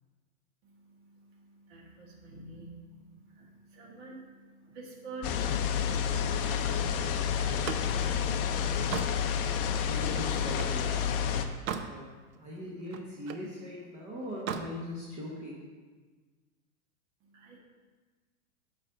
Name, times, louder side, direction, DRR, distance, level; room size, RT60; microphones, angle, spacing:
voice 1, 0.6-8.2 17.2-17.6, right 3 dB, 35° right, -2 dB, 1.7 m, -49 dB
sound 1, 5.2-11.4, left 7 dB, 40° left, 0.6 m, -29 dB
Slam, 7.4-10.8 11.3-12.0 12.4-13.5 14.3-14.7, right 7 dB, 70° right, 0.8 m, -39 dB
voice 2, 9.7-11.2 11.9-12.0 12.4-15.6, left 1 dB, 15° right, -4 dB, 1.1 m, -40 dB
7.3 x 5.1 x 6.2 m, 1.4 s
supercardioid pair, 155°, 43 cm